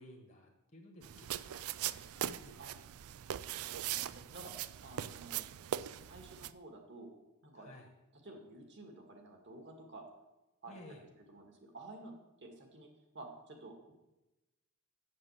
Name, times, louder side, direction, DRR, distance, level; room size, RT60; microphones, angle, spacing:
voice 1, 0.0-1.6 1.9-2.8 7.5-7.9 10.7-11.0, left 1 dB, 40° left, 2 dB, 1.3 m, -55 dB
sound 1, 1.0-6.5, right 11 dB, 85° right, 0.4 m, -40 dB
voice 2, 3.6-4.5 4.8-5.5 6.0-7.1 7.4-7.7 8.2-10.0 10.6-10.7 11.3-12.1 12.4-12.9 13.1-13.9, right 2 dB, 55° right, 2 dB, 2.1 m, -52 dB
7.5 x 7.5 x 7.4 m, 1.0 s
head